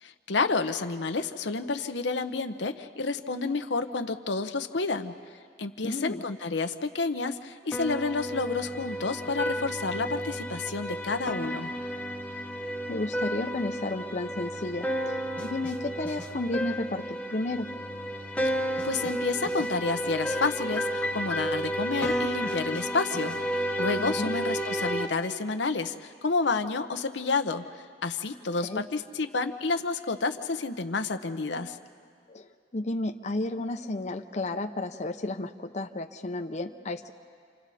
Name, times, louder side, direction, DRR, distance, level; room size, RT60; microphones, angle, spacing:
voice 1, 0.0-5.1 5.6-11.7 18.8-23.4 23.8-27.6 28.0-31.8, left 4 dB, 80° left, 8 dB, 0.8 m, -30 dB
voice 2, 5.8-6.2 12.9-17.7 24.0-24.3 28.6-28.8 32.3-37.1, left 2 dB, 40° left, 6 dB, 0.7 m, -32 dB
sound 1, 7.7-25.1, equal, 5° left, 1.0 m, -32 dB
29.5 x 26.5 x 4.2 m, 2.2 s
head